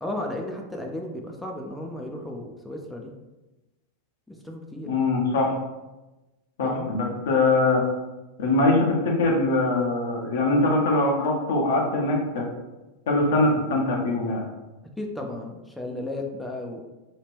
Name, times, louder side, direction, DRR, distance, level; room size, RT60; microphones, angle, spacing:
voice 1, 0.0-3.1 4.3-4.9 6.6-6.9 15.0-16.8, left 1 dB, 5° left, 1 dB, 0.4 m, -34 dB
voice 2, 4.9-5.5 6.6-7.8 8.4-12.4 13.1-14.4, left 2 dB, 60° left, 0 dB, 0.7 m, -22 dB
2.9 x 2.4 x 3.3 m, 1.1 s
figure-of-eight pair, 90°, 0 cm